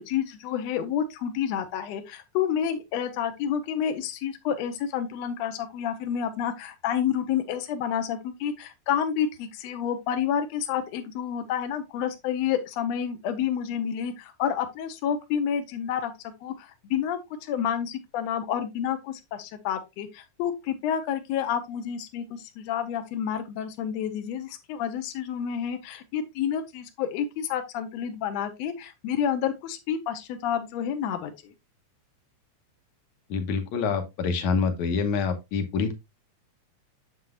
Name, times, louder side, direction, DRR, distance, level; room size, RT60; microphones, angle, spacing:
voice 1, 0.0-16.1 16.4-31.5, left 8 dB, 85° left, 7 dB, 1.5 m, -29 dB
voice 2, 33.3-35.9, left 5 dB, 65° left, 7 dB, 1.9 m, -26 dB
7.8 x 6.8 x 2.4 m, 0.22 s
omnidirectional pair, 4.2 m